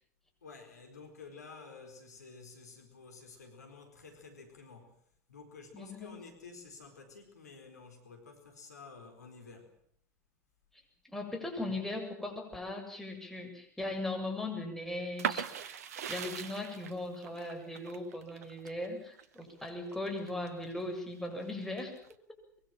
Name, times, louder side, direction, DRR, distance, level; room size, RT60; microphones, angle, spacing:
voice 1, 0.4-4.9 5.3-9.7, left 4 dB, 80° left, 4 dB, 4.4 m, -51 dB
voice 2, 5.7-6.2 11.1-15.8 16.1-21.9, left 2 dB, 5° left, 2 dB, 7.7 m, -38 dB
sound 1, 15.2-20.8 21.3-22.1, right 8 dB, 70° right, 1.3 m, -39 dB
24.0 x 23.0 x 7.6 m, 0.62 s
figure-of-eight pair, 75°, 9 cm